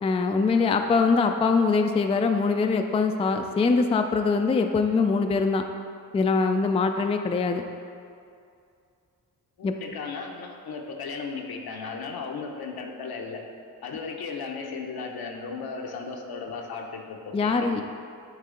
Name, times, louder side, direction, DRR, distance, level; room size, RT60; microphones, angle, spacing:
voice 1, 0.0-5.6 6.1-7.6 9.6-9.7 17.3-17.8, left 4 dB, 15° left, 5 dB, 0.3 m, -23 dB
voice 2, 9.6-13.4 13.8-17.8, left 4 dB, 75° left, 2 dB, 0.8 m, -36 dB
8.3 x 3.3 x 3.8 m, 2.4 s
cardioid pair, 65°, 37 cm